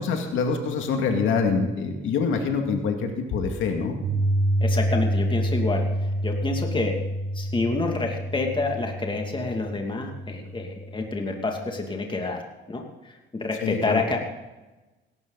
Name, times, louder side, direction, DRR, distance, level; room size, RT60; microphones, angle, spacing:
voice 1, 0.0-4.0 13.6-14.0, left 5 dB, 85° left, 4 dB, 2.3 m, -25 dB
Piano, 4.0-12.1, right 1 dB, 80° right, 2.2 m, -28 dB
voice 2, 4.6-6.9 7.3-12.4 12.7-14.2, left 3 dB, 25° left, 2 dB, 2.5 m, -28 dB
17.0 x 13.5 x 4.1 m, 1.1 s
cardioid pair, 90°, 20 cm